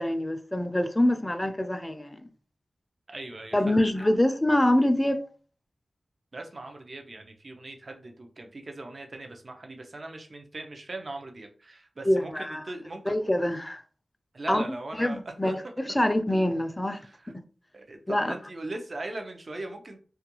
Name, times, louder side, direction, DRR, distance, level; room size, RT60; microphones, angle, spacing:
voice 1, 0.0-2.3 3.5-5.2 12.0-12.6 13.1-13.8 14.5-14.7 15.0-17.0 18.1-18.3, left 1 dB, 20° left, 0.4 m, -25 dB
voice 2, 3.1-3.8 6.3-13.2 14.3-15.7 17.0-17.3 17.7-20.0, right 2 dB, 55° right, 0.5 m, -39 dB
2.3 x 2.2 x 2.9 m
cardioid pair, 45°, 0 cm